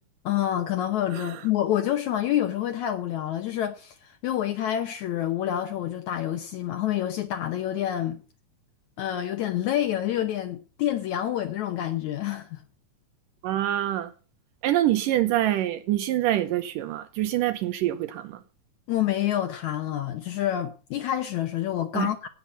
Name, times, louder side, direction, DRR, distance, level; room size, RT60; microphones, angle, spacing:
voice 1, 0.3-8.2 9.0-12.6 18.9-22.3, left 12 dB, 70° left, 2.0 m, -27 dB
voice 2, 13.4-14.1 14.6-18.4 21.9-22.1, right 13 dB, 80° right, 2.5 m, -25 dB
17.0 x 5.9 x 8.2 m
omnidirectional pair, 3.9 m